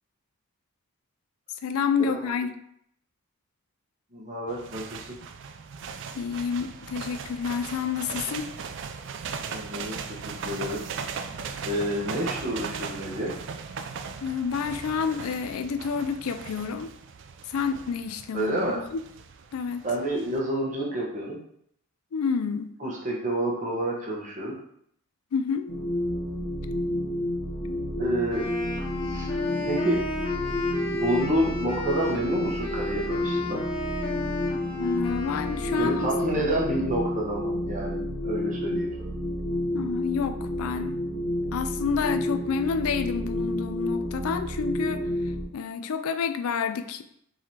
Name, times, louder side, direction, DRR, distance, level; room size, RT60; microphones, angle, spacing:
voice 1, 1.6-2.5 6.1-8.5 14.2-16.9 17.5-19.0 19.5-19.8 22.1-22.7 25.3-25.7 27.6-27.8 34.8-36.1 39.7-41.0 41.5-45.0 45.5-47.0, left 6 dB, 90° left, 9 dB, 0.4 m, -29 dB
voice 2, 4.1-5.0 9.5-10.8 11.6-13.3 18.3-18.8 19.8-21.4 22.8-24.5 28.0-28.5 29.1-29.3 29.7-30.0 30.9-33.6 35.8-39.1, right 1 dB, 35° right, -3 dB, 1.1 m, -29 dB
sound 1, 4.5-20.4, right 5 dB, 55° right, 0.3 m, -38 dB
sound 2, 25.7-45.4, left 1 dB, 65° left, 1.1 m, -30 dB
Wind instrument woodwind instrument, 28.3-36.4, left 3 dB, 25° left, 0.7 m, -34 dB
4.7 x 3.9 x 2.8 m, 0.71 s
head